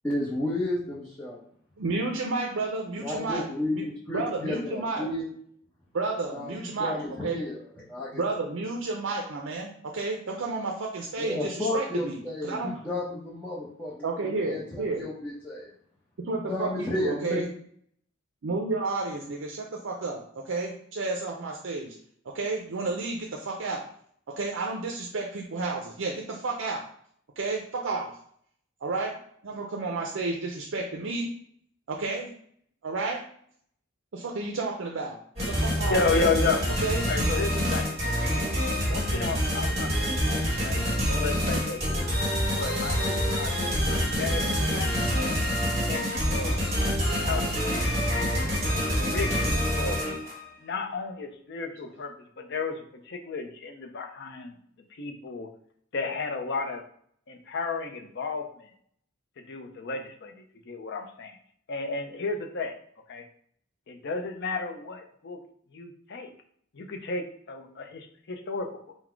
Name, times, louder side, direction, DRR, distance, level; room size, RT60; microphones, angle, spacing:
voice 1, 0.0-1.4 3.0-5.2 6.3-8.1 11.2-14.0 14.4-15.7 16.5-17.4, left 1 dB, 10° left, -8 dB, 0.8 m, -32 dB
voice 2, 1.8-3.9 4.1-5.1 5.9-7.4 8.1-12.2 12.4-12.7 14.0-15.0 16.2-17.5 18.4-21.9 22.2-23.8 24.4-26.8 27.4-28.2 28.8-29.2 29.4-31.3 31.9-32.3 32.8-33.2 34.1-35.2 35.5-36.0 36.8-37.5 42.4-42.5 45.5-45.6 46.3-46.7, right 3 dB, 70° right, 1 dB, 0.5 m, -31 dB
sound 1, 35.4-50.4, equal, 35° right, 1.6 m, -26 dB
voice 3, 35.9-36.6 37.1-37.9 38.9-41.8 42.5-43.8 44.2-44.5 44.7-45.5 45.9-46.5 47.2-48.0 48.3-48.8 49.1-49.5 49.8-50.0 50.6-54.5 55.0-55.5 55.9-56.8 57.3-58.7 59.4-61.4 61.7-62.7 63.1-63.2 63.9-65.4 65.7-66.3 66.7-68.7, left 4 dB, 60° left, 4 dB, 0.6 m, -33 dB
3.9 x 2.1 x 4.5 m, 0.63 s
head